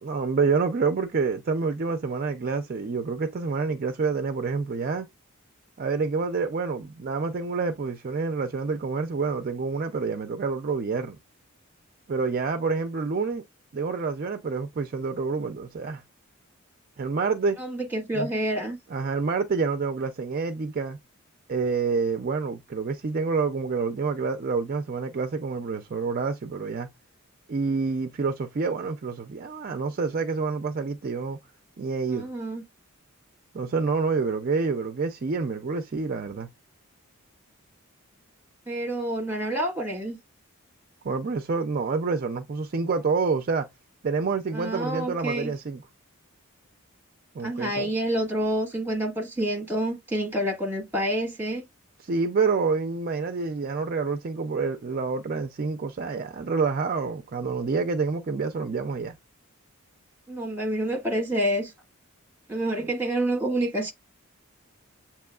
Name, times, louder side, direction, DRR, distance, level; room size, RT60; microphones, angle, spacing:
voice 1, 0.0-5.1 5.8-11.2 12.1-13.4 13.7-16.0 17.0-17.6 18.1-18.3 18.9-21.0 21.5-26.9 27.5-31.4 31.8-32.3 33.5-36.5 41.0-43.7 44.0-45.8 47.3-47.9 52.0-59.1 62.8-62.9, right 4 dB, 40° right, 0.4 m, -27 dB
voice 2, 17.6-18.8 32.1-32.6 38.7-40.2 44.5-45.5 47.4-51.6 60.3-61.7 62.5-63.9, right 1 dB, 10° right, 1.5 m, -28 dB
7.7 x 2.9 x 2.3 m
head